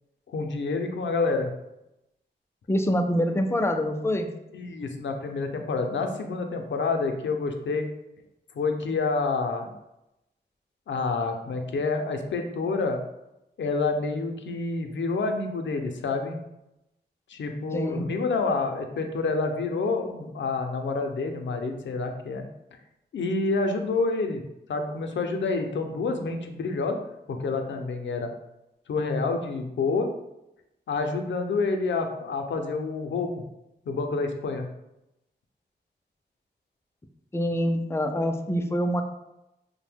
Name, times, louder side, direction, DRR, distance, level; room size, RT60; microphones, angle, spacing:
voice 1, 0.3-1.5 4.5-7.9 8.5-9.7 10.9-13.0 13.6-16.4 17.3-22.4 23.1-24.4 24.7-27.0 27.3-28.3 28.9-30.1 30.9-33.4 33.9-34.7, left 3 dB, 80° left, 4 dB, 0.4 m, -28 dB
voice 2, 2.7-4.3 17.7-18.1 37.3-39.0, equal, 15° left, 5 dB, 0.3 m, -25 dB
2.6 x 2.0 x 3.4 m, 0.88 s
wide cardioid pair, 65°, 19 cm